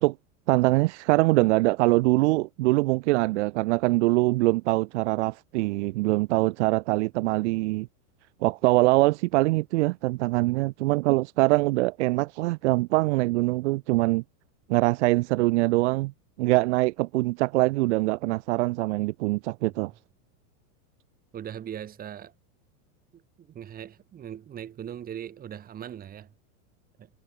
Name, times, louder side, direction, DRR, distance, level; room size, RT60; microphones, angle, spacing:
voice 1, 0.5-7.9 8.4-14.2 14.7-16.1 16.4-19.9, right 21 dB, 50° right, 0.6 m, -23 dB
voice 2, 21.3-22.3 23.1-26.3 27.0-27.1, right 9 dB, 20° right, 5.0 m, -40 dB
supercardioid pair, 170°, 45 cm